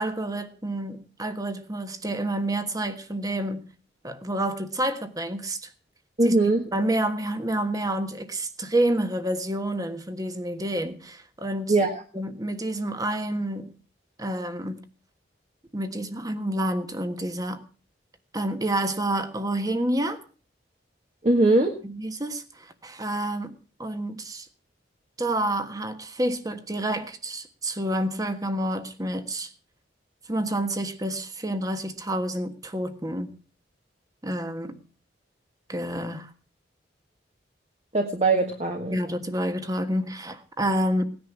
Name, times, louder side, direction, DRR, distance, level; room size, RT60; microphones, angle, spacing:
voice 1, 0.0-3.7 4.0-5.7 6.2-6.3 6.7-11.7 12.1-13.7 14.2-14.8 15.7-17.6 18.3-20.2 21.8-24.5 25.2-29.5 30.2-33.3 34.2-34.8 35.7-36.3 38.9-41.0, right 1 dB, 20° right, 1.4 m, -29 dB
voice 2, 6.2-6.6 11.7-12.0 21.2-21.7 37.9-39.0, right 2 dB, 35° right, 1.7 m, -21 dB
18.0 x 10.5 x 6.1 m
head